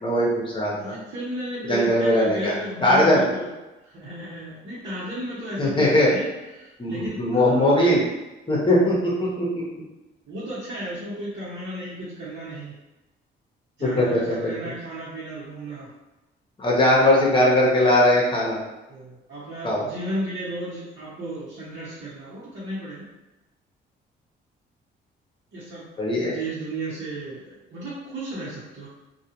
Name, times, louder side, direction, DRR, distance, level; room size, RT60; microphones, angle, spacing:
voice 1, 0.0-0.9 1.7-2.5 2.8-3.2 5.6-6.1 6.8-8.0 8.5-9.6 13.8-14.4 16.6-18.6 19.6-19.8 26.0-26.3, left 1 dB, 25° left, -4 dB, 0.9 m, -20 dB
voice 2, 0.8-3.5 3.8-6.3 6.6-7.9 10.3-12.8 13.8-15.9 16.9-17.1 18.9-23.1 25.5-28.9, right 1 dB, 65° right, -10 dB, 1.0 m, -34 dB
2.3 x 2.3 x 2.9 m, 1.0 s
cardioid pair, 90°, 20 cm